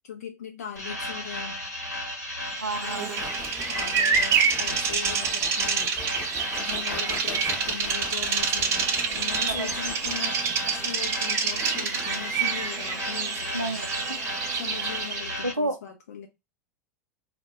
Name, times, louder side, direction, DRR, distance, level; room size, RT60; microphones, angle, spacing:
voice 1, 0.0-1.6 3.7-5.9 6.6-10.4 10.7-13.8 14.5-16.3, left 8 dB, 65° left, 0.4 m, -40 dB
sound 1, 0.8-15.5, left 1 dB, 85° left, 0.9 m, -34 dB
voice 2, 2.6-3.2 9.5-9.7 13.5-14.2 15.4-15.8, right 2 dB, 90° right, 0.4 m, -30 dB
Bird vocalization bird call bird song, 2.7-15.4, right 6 dB, 30° right, 0.5 m, -28 dB
sound 2, 3.2-10.2, left 4 dB, 20° left, 0.6 m, -43 dB
2.1 x 2.1 x 3.2 m
figure-of-eight pair, 85°, 9 cm